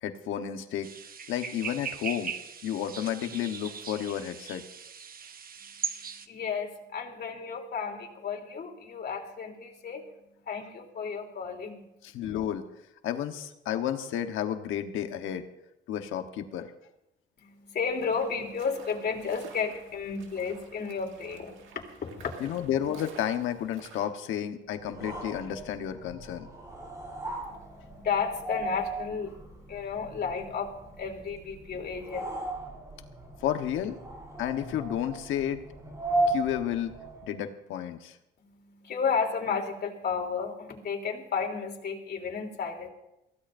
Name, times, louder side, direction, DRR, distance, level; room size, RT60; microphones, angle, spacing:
voice 1, 0.0-0.9 1.3-2.3 2.6-4.6 12.0-12.7 13.0-15.4 15.9-16.7 22.4-26.5 33.4-34.0 34.4-35.6 36.3-36.9 37.2-38.2, left 10 dB, 85° left, 7 dB, 1.2 m, -31 dB
sound 1, 0.8-6.3, right 7 dB, 45° right, 1.1 m, -39 dB
voice 2, 6.2-10.1 10.4-11.8 17.4-22.3 27.4-32.3 38.4-42.9, left 6 dB, 55° left, 1 dB, 3.4 m, -33 dB
sound 2, 17.8-24.1, right 6 dB, 90° right, 1.9 m, -51 dB
sound 3, 24.8-37.4, right 2 dB, 15° right, 4.3 m, -36 dB
23.0 x 16.0 x 2.6 m, 0.90 s
cardioid pair, 90°, 20 cm